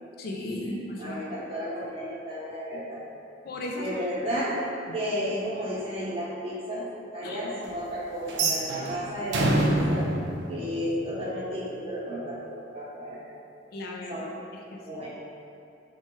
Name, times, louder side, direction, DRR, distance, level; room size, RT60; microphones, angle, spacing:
voice 1, 0.2-1.2 3.4-4.0 4.9-5.0 7.2-7.4 8.4-8.5 13.7-14.3 14.7-14.8, left 2 dB, 55° left, -1 dB, 0.4 m, -35 dB
voice 2, 1.0-3.0 3.8-4.6 4.9-10.1 10.5-13.2 14.1-14.3 14.9-15.1, equal, 30° right, -8 dB, 0.8 m, -33 dB
sound 1, 8.3-11.4, right 2 dB, 60° right, 0.4 m, -27 dB
3.2 x 2.3 x 4.3 m, 2.6 s
head